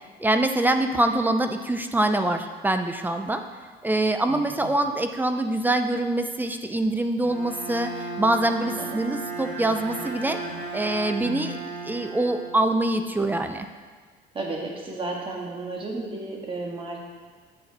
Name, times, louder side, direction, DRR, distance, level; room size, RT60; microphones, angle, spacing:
voice 1, 0.2-3.4 3.8-7.9 8.2-10.4 10.7-11.6 11.8-13.7, right 1 dB, 10° right, 7 dB, 0.6 m, -24 dB
voice 2, 4.3-4.8 8.6-9.0 14.3-17.0, right 2 dB, 30° right, -1 dB, 2.0 m, -33 dB
Bowed string instrument, 7.2-13.2, right 3 dB, 50° right, 2.6 m, -35 dB
9.5 x 7.8 x 4.2 m, 1.5 s
cardioid pair, 110°, 17 cm